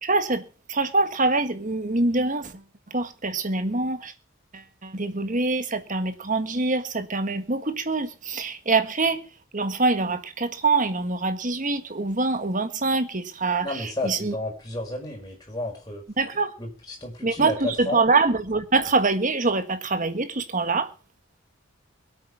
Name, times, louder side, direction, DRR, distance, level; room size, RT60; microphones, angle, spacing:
voice 1, 0.0-4.1 4.5-9.2 9.5-14.4 16.2-16.5 17.2-20.9, right 3 dB, 40° right, 1.6 m, -25 dB
voice 2, 13.6-16.0 16.6-18.0, left 2 dB, 20° left, 5.4 m, -32 dB
22.5 x 8.6 x 4.8 m
head